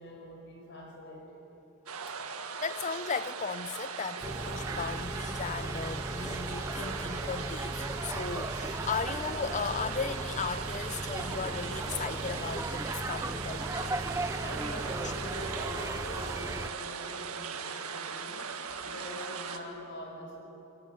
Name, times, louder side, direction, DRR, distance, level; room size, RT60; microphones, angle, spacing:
voice 1, 0.0-1.4 14.4-18.4 18.9-20.4, left 1 dB, 55° left, 5.5 m, -44 dB
sound 1, 1.9-19.6, right 6 dB, 85° right, 1.8 m, -39 dB
voice 2, 2.6-14.0, left 5 dB, 35° left, 0.7 m, -36 dB
sound 2, 4.2-16.7, right 2 dB, 15° right, 0.6 m, -37 dB
29.5 x 21.5 x 9.1 m
head